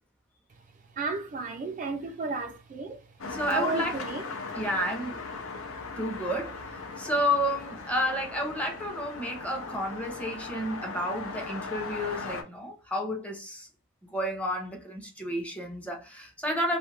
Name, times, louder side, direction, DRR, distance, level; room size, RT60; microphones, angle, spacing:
voice 1, 1.0-3.0 3.5-4.2, right 3 dB, 40° right, 0.3 m, -33 dB
sound 1, 3.2-12.4, left 4 dB, 75° left, 0.6 m, -38 dB
voice 2, 3.3-4.0 4.5-5.2 6.0-13.7 14.0-16.8, equal, 5° left, 0.7 m, -31 dB
2.7 x 2.4 x 3.2 m
head